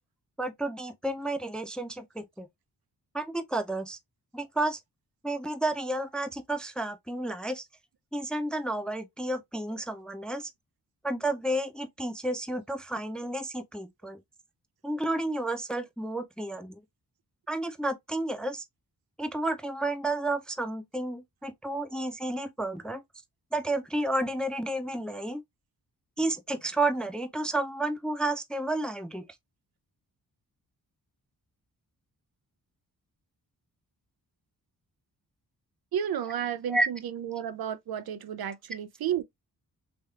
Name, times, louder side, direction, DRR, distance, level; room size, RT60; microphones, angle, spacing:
voice 1, 0.4-2.5 3.1-4.0 4.3-4.8 5.2-7.6 8.1-10.5 11.0-14.2 14.8-16.8 17.5-18.6 19.2-23.0 23.5-25.4 26.2-29.3 36.7-36.9, right 1 dB, ahead, 0.4 m, -31 dB
voice 2, 35.9-39.2, right 9 dB, 70° right, 0.5 m, -32 dB
3.1 x 3.0 x 2.3 m
cardioid pair, 70°, 38 cm